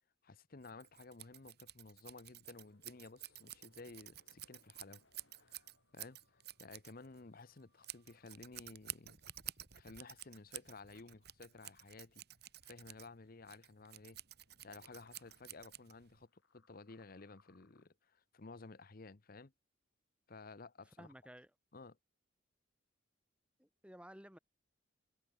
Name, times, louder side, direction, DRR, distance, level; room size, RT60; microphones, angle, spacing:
voice 1, 0.2-5.0 5.4-5.7 5.9-9.2 9.8-12.2 12.6-14.2 14.6-19.5 20.3-21.1 21.7-22.0, left 3 dB, 50° left, 0.8 m, -54 dB
Scissors, 0.6-16.2, right 13 dB, 55° right, 2.8 m, -52 dB
sound 1, 2.6-12.6 12.9-13.0 13.2-17.9, left 3 dB, 65° left, 4.6 m, -75 dB
voice 2, 20.9-21.5 23.6-24.4, equal, 5° right, 5.5 m, -55 dB
head